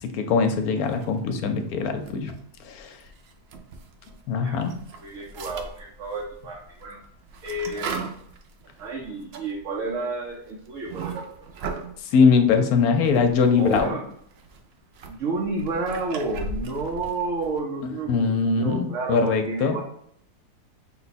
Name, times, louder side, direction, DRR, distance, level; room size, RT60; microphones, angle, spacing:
voice 1, 0.0-2.3 2.6-3.0 4.3-4.7 12.1-13.9 18.1-19.8, left 5 dB, 70° left, 6 dB, 1.1 m, -21 dB
sound 1, 0.8-1.5 1.9-4.2 4.5-12.0 12.7-13.9 14.2-17.6, right 4 dB, 75° right, 0.5 m, -38 dB
voice 2, 5.0-7.0 7.4-8.2 8.8-11.3 11.7-11.8 13.6-14.0 15.1-19.8, right 3 dB, 60° right, -1 dB, 1.0 m, -31 dB
5.9 x 2.2 x 4.1 m, 0.68 s
omnidirectional pair, 1.7 m